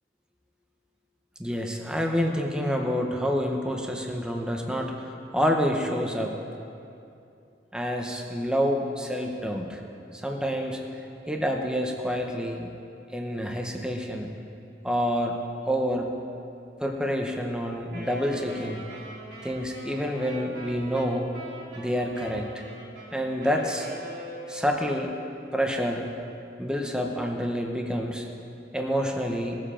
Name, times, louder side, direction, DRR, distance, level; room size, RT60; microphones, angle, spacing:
voice 1, 1.4-6.3 7.7-9.8 10.1-10.8 11.3-12.7 13.1-14.3 14.8-15.4 15.6-16.1 16.8-18.8 19.4-21.3 21.8-22.5 23.1-23.9 24.5-25.1 25.5-26.0 26.6-28.3 28.7-29.6, equal, 5° right, 2 dB, 0.9 m, -28 dB
Wind instrument woodwind instrument, 17.9-24.9, right 1 dB, 75° right, 3.4 m, -42 dB
19.5 x 7.5 x 5.0 m, 2.6 s
head